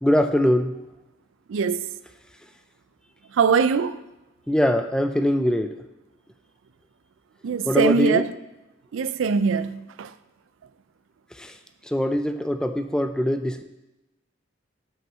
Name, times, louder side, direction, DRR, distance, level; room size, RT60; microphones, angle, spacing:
voice 1, 0.0-0.7 4.5-5.7 7.7-8.2 11.4-11.5 11.9-13.6, equal, 5° left, 0.3 m, -22 dB
voice 2, 1.5-1.9 3.4-4.0 7.4-8.2 8.9-10.1, right 5 dB, 85° right, 0.4 m, -22 dB
6.1 x 5.7 x 5.5 m
head